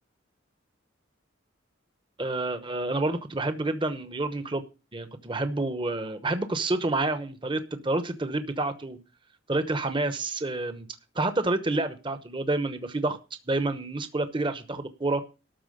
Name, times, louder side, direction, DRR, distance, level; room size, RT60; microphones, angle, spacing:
voice 1, 2.2-4.6 4.9-9.0 9.5-10.9 11.1-13.2 13.5-15.2, right 2 dB, 25° right, 9 dB, 0.9 m, -28 dB
13.0 x 4.5 x 7.8 m, 0.31 s
head